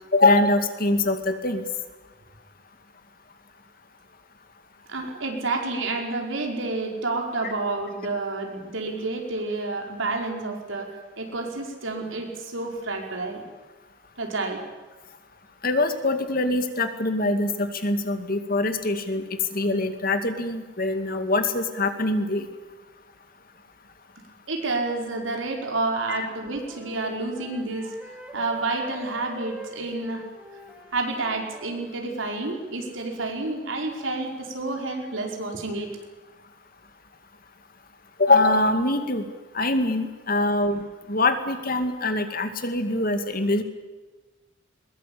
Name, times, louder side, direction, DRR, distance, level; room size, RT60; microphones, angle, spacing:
voice 1, 0.1-1.6 15.6-19.2 19.5-22.5 26.1-26.3 38.2-39.2 39.5-43.6, left 2 dB, 45° left, 8 dB, 2.2 m, -23 dB
voice 2, 4.9-13.4 14.2-14.6 24.5-27.9 28.3-30.2 30.9-35.9, right 3 dB, 80° right, 2 dB, 4.9 m, -29 dB
Wind instrument woodwind instrument, 26.4-31.9, left 1 dB, 5° right, 3.1 m, -43 dB
21.5 x 21.5 x 8.6 m, 1.3 s
head